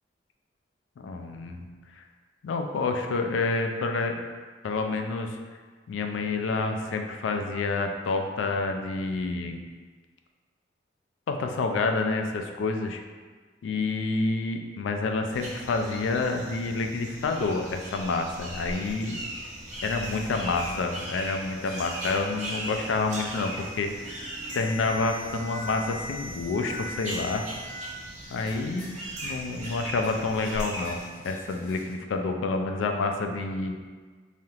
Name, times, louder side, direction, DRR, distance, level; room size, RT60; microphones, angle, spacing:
voice 1, 1.0-1.7 2.0-2.1 2.4-4.2 4.6-5.4 5.9-9.6 11.3-13.0 13.6-19.2 19.8-24.2 24.5-27.4 28.3-31.0 31.2-33.8, left 3 dB, 85° left, 4 dB, 0.3 m, -28 dB
sound 1, 15.3-31.1, right 1 dB, 40° right, 0.7 m, -39 dB
sound 2, 19.7-27.8 28.2-29.0 29.2-29.8 30.0-31.9, left 1 dB, 30° left, 1.1 m, -43 dB
3.3 x 2.3 x 2.7 m, 1.5 s
head